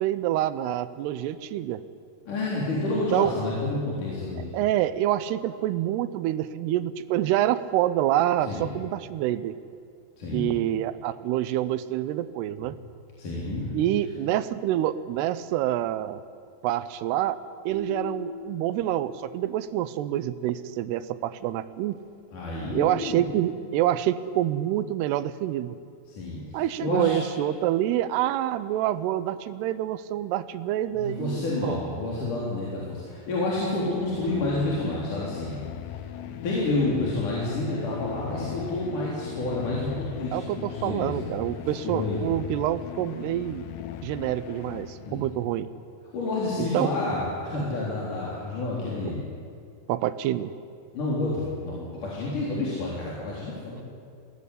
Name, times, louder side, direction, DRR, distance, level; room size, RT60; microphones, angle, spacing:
voice 1, 0.0-1.8 3.1-3.3 4.5-9.5 10.3-12.8 13.7-16.2 16.6-17.4 17.7-22.0 22.7-25.8 26.5-31.8 40.3-43.7 44.0-45.7 46.6-46.9 49.9-50.5, right 12 dB, 80° right, 14 dB, 2.7 m, -27 dB
voice 2, 2.3-4.5 8.4-8.7 10.2-10.5 13.2-13.7 22.3-23.3 26.1-27.2 30.9-35.6 36.4-42.2 45.1-45.3 46.1-49.2 50.9-53.8, left 2 dB, 50° left, -6 dB, 4.9 m, -29 dB
sound 1, 17.7-19.9, left 4 dB, 55° right, 6.5 m, -40 dB
sound 2, 33.8-45.5, left 10 dB, 85° left, 3.2 m, -39 dB
21.5 x 17.5 x 10.0 m, 2.3 s
omnidirectional pair, 4.8 m